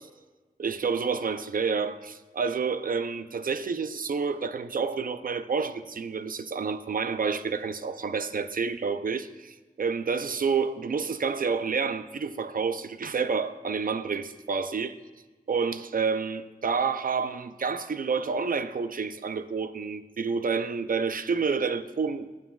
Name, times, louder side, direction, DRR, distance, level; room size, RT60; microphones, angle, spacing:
voice 1, 0.6-15.0 15.5-22.3, right 5 dB, 65° right, 0.5 m, -29 dB
20.0 x 7.3 x 2.4 m
wide cardioid pair, 85°, 16 cm